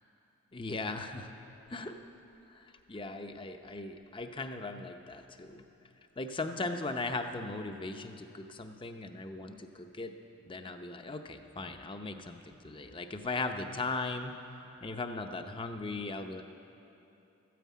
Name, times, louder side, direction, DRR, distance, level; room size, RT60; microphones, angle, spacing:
voice 1, 0.5-1.3 1.7-2.0 2.5-5.7 6.2-10.1 10.4-14.4 14.8-16.4, left 3 dB, 25° left, 6 dB, 0.7 m, -38 dB
13.5 x 9.3 x 8.4 m, 2.9 s
head